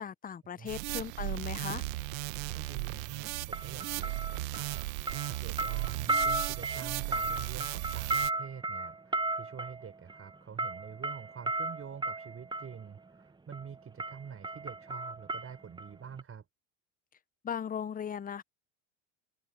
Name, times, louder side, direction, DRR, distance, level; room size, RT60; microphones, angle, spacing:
voice 1, 0.0-1.8 17.4-18.4, left 8 dB, 20° left, 0.7 m, -37 dB
sound 1, 0.7-8.3, right 22 dB, 75° right, 1.3 m, -36 dB
sound 2, 1.6-1.8 3.5-4.8 5.1-12.8 13.5-13.7 14.0-15.9 16.2-16.3, right 2 dB, 10° right, 0.9 m, -35 dB
voice 2, 2.5-4.9 5.2-16.4, right 7 dB, 35° right, 6.9 m, -46 dB
hypercardioid pair, 85°, 40 cm